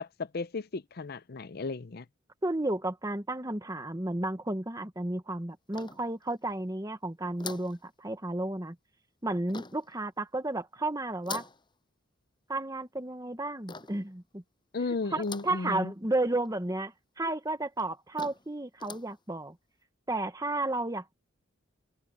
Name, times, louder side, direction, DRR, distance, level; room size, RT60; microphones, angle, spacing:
voice 1, 0.0-2.1 14.7-15.9, left 3 dB, 50° left, 0.6 m, -34 dB
voice 2, 2.4-8.8 9.2-11.5 12.5-14.4 15.1-19.6 20.1-21.1, right 2 dB, 15° right, 1.3 m, -32 dB
sound 1, 5.7-6.5 7.4-7.8 9.5-9.9 11.2-11.6 13.7-14.1 15.2-15.6 16.1-16.2 16.4-16.5 17.3-17.4 17.8-17.9 18.2-18.5 18.8-19.1, left 4 dB, 25° left, 7.9 m, -43 dB
head